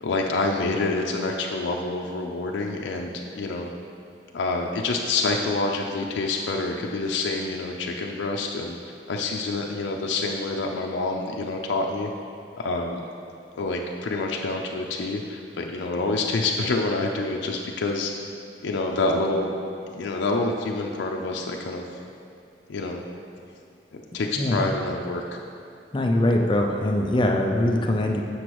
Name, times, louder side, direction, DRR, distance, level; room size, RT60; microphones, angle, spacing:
voice 1, 0.0-3.7 4.3-8.8 9.1-12.1 12.6-13.0 13.6-18.1 18.6-19.5 19.9-21.9 22.7-23.0 23.9-25.4, left 3 dB, 90° left, 1 dB, 0.4 m, -27 dB
voice 2, 25.9-28.2, left 1 dB, 25° left, 2 dB, 0.5 m, -22 dB
7.9 x 6.0 x 3.0 m, 2.5 s
head